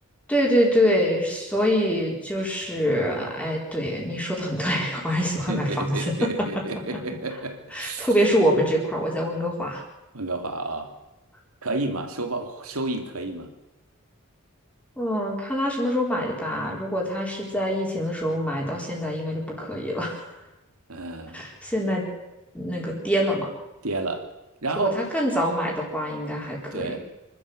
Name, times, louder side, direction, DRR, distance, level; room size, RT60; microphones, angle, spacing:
voice 1, 0.3-6.3 7.7-9.8 15.0-20.3 21.3-22.0 22.5-23.5 24.8-27.0, equal, 5° left, -1 dB, 4.2 m, -25 dB
voice 2, 5.5-8.1 10.1-10.9 11.6-13.5 20.9-21.4 23.8-24.2 24.6-25.0 26.7-27.0, right 2 dB, 90° right, 6 dB, 3.0 m, -30 dB
26.0 x 12.5 x 8.0 m, 1.0 s
head